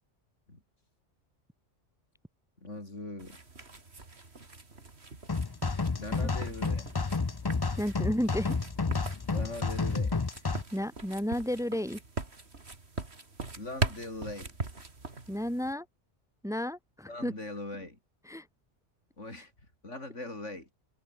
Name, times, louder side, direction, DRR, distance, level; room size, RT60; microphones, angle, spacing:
voice 1, 2.6-3.4 6.0-6.9 9.3-10.1 10.4-10.5 13.5-14.6 17.1-18.0 19.2-19.5 19.8-20.7, left 2 dB, 85° left, 6.2 m, -40 dB
sound 1, 3.2-15.7, right 3 dB, 60° right, 3.2 m, -41 dB
sound 2, 5.3-10.6, left 4 dB, 25° left, 0.6 m, -30 dB
voice 2, 7.8-8.6 10.7-12.0 15.3-15.9 16.4-17.3 18.3-18.5, equal, 5° right, 2.1 m, -32 dB
omnidirectional pair, 1.2 m